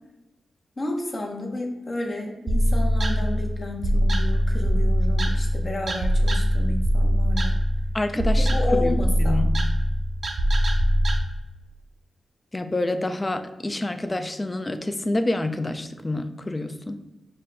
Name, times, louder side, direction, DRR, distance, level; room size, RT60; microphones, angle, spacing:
voice 1, 0.8-7.6 8.5-9.5, left 2 dB, 45° left, 1 dB, 0.9 m, -31 dB
sound 1, 2.5-11.2, equal, 60° right, 0.6 m, -22 dB
voice 2, 7.9-9.5 12.5-17.0, left 2 dB, 25° left, 9 dB, 0.4 m, -28 dB
4.9 x 2.2 x 3.8 m, 1.0 s
cardioid pair, 50°, 0 cm